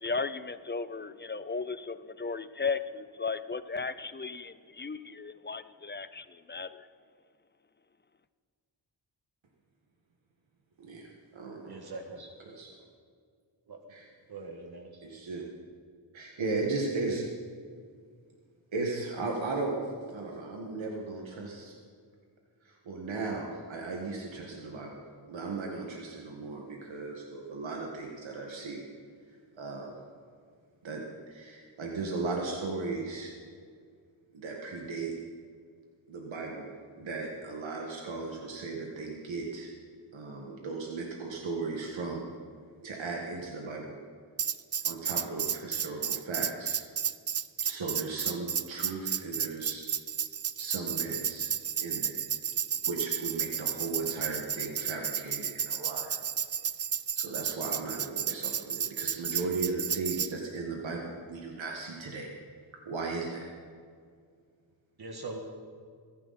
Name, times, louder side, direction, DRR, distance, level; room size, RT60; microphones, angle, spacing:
voice 1, 0.0-6.9, left 4 dB, 25° left, 13 dB, 0.4 m, -35 dB
voice 2, 10.8-11.7 12.4-12.7 13.9-14.1 15.0-15.4 16.1-17.2 18.7-19.8 20.1-21.7 22.9-24.9 25.3-28.8 29.6-29.9 30.8-31.0 31.3-33.3 34.3-35.1 36.1-39.7 40.1-42.2 42.8-43.9 44.9-46.8 47.6-49.9 50.6-51.5 51.8-52.2 52.9-56.1 57.2-62.3 62.9-63.5, right 3 dB, 85° right, 0 dB, 1.8 m, -36 dB
voice 3, 11.7-12.3 13.7-13.8 14.3-14.9 65.0-65.4, right 3 dB, 55° right, 2 dB, 1.6 m, -41 dB
Tambourine, 44.4-60.3, right 8 dB, 35° right, 0.4 m, -32 dB
23.5 x 10.5 x 4.2 m, 2.1 s
wide cardioid pair, 120°, 45 cm